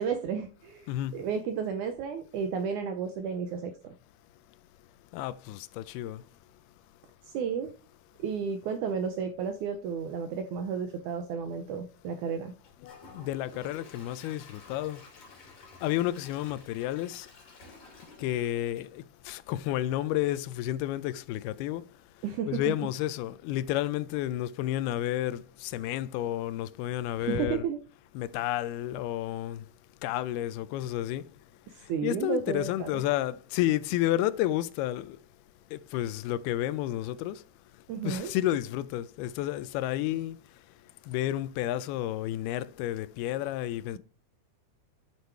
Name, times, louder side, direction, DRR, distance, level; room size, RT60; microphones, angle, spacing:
voice 1, 0.0-3.9 7.3-7.7 8.2-12.5 22.2-22.7 27.2-27.8 31.7-33.0 37.9-38.3, right 6 dB, 75° right, 1.8 m, -32 dB
voice 2, 0.9-1.2 5.1-6.2 12.8-15.0 15.8-17.3 18.2-21.8 22.5-27.7 28.1-29.6 30.0-31.3 32.0-35.2 35.7-37.4 38.0-40.4 41.1-44.0, left 13 dB, 90° left, 2.6 m, -31 dB
Gurgling / Toilet flush / Trickle dribble, 12.6-19.7 20.1-20.2 20.6-20.7, left 3 dB, 45° left, 4.0 m, -53 dB
9.7 x 6.7 x 4.7 m
omnidirectional pair, 4.4 m